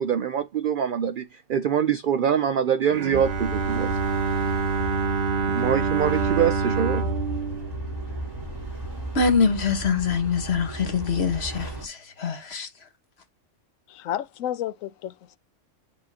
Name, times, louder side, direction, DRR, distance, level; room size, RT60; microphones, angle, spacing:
voice 1, 0.0-4.0 5.5-7.1, right 8 dB, 70° right, 0.5 m, -24 dB
Bowed string instrument, 2.9-8.8, right 5 dB, 45° right, 0.9 m, -27 dB
sound 1, 3.1-11.9, right 1 dB, 15° right, 3.9 m, -35 dB
voice 2, 9.1-12.7, left 5 dB, 50° left, 1.4 m, -24 dB
voice 3, 13.9-15.4, left 11 dB, 80° left, 1.0 m, -31 dB
10.5 x 3.8 x 2.8 m
omnidirectional pair, 1.4 m